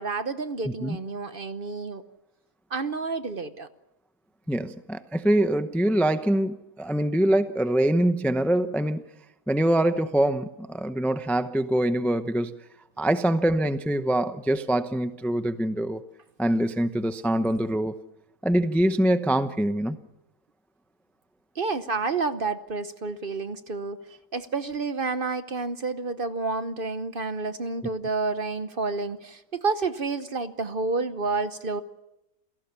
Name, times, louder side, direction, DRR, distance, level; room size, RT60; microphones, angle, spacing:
voice 1, 0.0-2.0 2.7-3.7 21.5-24.0 24.3-31.8, right 3 dB, 45° right, 11 dB, 1.0 m, -29 dB
voice 2, 4.5-9.0 9.5-12.5 13.0-16.0 16.4-18.0 18.4-20.0, right 1 dB, ahead, 10 dB, 0.6 m, -24 dB
28.0 x 17.5 x 7.0 m, 0.89 s
omnidirectional pair, 1.5 m